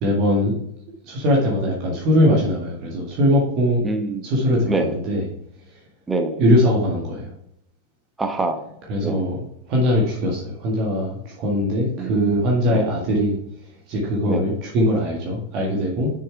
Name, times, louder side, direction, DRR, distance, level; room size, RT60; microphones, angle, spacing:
voice 1, 0.0-0.5 1.0-3.8 4.2-5.3 6.4-7.3 8.9-9.4 9.7-13.3 13.9-16.1, equal, 40° right, -3 dB, 1.9 m, -21 dB
voice 2, 3.8-4.2 4.7-5.0 6.1-6.4 8.2-8.6 9.0-9.2 12.0-12.3 12.7-12.8 14.3-14.5, right 2 dB, 10° right, 5 dB, 1.1 m, -25 dB
6.9 x 6.7 x 3.4 m, 0.73 s
figure-of-eight pair, 90°, 0 cm